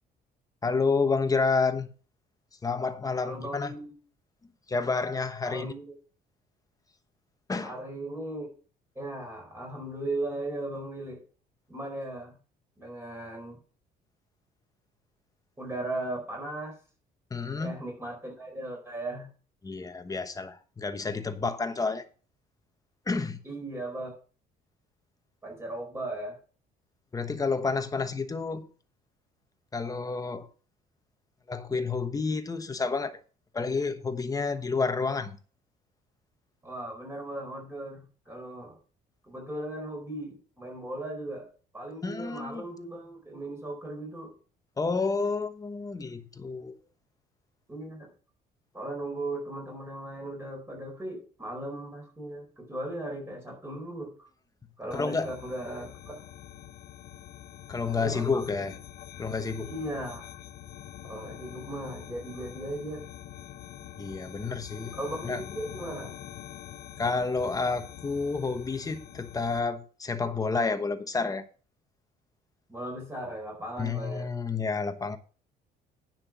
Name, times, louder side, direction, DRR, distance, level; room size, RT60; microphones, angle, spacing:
voice 1, 0.6-1.9 2.6-3.7 4.7-5.7 7.5-7.7 17.3-17.8 19.6-22.0 23.1-23.4 27.1-28.7 29.7-30.5 31.5-33.2 33.5-35.4 42.0-42.6 44.8-46.8 54.9-55.3 57.7-58.8 59.2-59.7 64.0-64.9 65.2-65.4 67.0-71.4 73.8-75.2, left 4 dB, 20° left, 1.2 m, -29 dB
voice 2, 3.2-3.9 5.4-5.9 7.6-8.5 8.9-11.2 11.7-12.3 12.8-13.6 15.6-16.8 17.6-19.3 23.4-24.1 25.4-26.4 36.6-38.8 39.2-44.3 47.7-48.1 48.7-54.3 54.8-56.1 58.0-58.3 59.7-60.2 61.1-63.0 64.9-66.1 72.7-74.3, right 1 dB, 15° right, 4.5 m, -37 dB
sound 1, 54.9-69.6, left 11 dB, 65° left, 0.9 m, -45 dB
9.8 x 5.9 x 6.1 m
cardioid pair, 110°, 17 cm